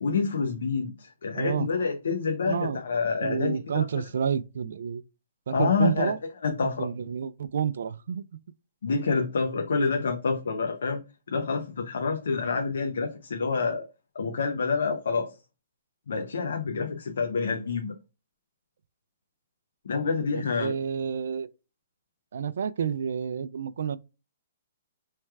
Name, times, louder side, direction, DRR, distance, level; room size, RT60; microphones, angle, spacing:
voice 1, 0.0-3.9 5.5-6.1 6.4-6.9 8.8-11.0 11.3-13.9 14.1-15.3 16.1-17.9 19.8-20.7, left 4 dB, 80° left, 0.6 m, -27 dB
voice 2, 1.3-1.7 2.4-2.8 3.2-5.0 5.5-6.2 6.6-8.2 20.3-21.5 22.3-24.0, right 7 dB, 65° right, 0.3 m, -29 dB
4.6 x 3.2 x 2.3 m
hypercardioid pair, 170°, 0 cm